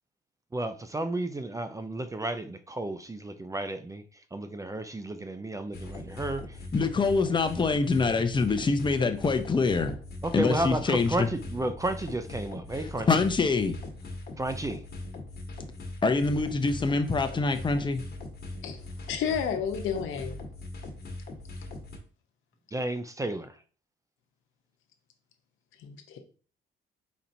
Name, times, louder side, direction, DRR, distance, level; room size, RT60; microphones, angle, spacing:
voice 1, 0.5-4.0 4.3-6.4 10.2-13.1 14.4-14.8 22.7-23.5, right 2 dB, 15° right, 0.4 m, -32 dB
sound 1, 5.7-22.0, left 2 dB, 50° left, 1.3 m, -40 dB
voice 2, 6.7-9.9 10.3-11.3 12.8-13.8 16.0-18.0, left 4 dB, 25° left, 0.6 m, -25 dB
voice 3, 19.1-20.4 25.8-26.2, left 7 dB, 85° left, 0.8 m, -31 dB
4.2 x 4.2 x 2.7 m
cardioid pair, 90°, 20 cm